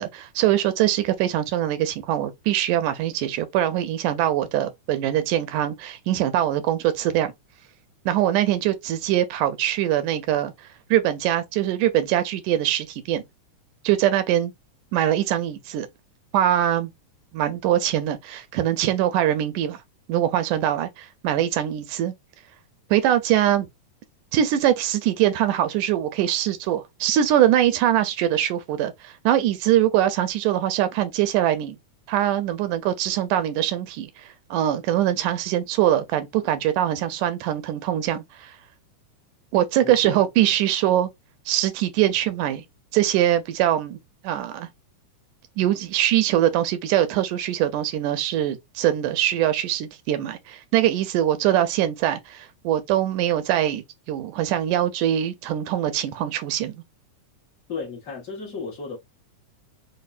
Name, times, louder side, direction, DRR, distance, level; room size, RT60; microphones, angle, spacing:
voice 1, 0.0-7.3 8.1-10.5 10.9-13.2 13.8-14.5 14.9-15.9 16.3-16.9 17.3-19.8 20.1-22.1 22.9-23.7 24.3-31.8 32.1-38.6 39.5-41.1 41.5-42.6 42.9-44.0 44.2-44.7 45.6-56.7, right 12 dB, 90° right, 2.1 m, -23 dB
voice 2, 39.8-40.2 57.7-59.0, left 4 dB, 65° left, 0.8 m, -34 dB
5.1 x 2.2 x 2.4 m
omnidirectional pair, 3.5 m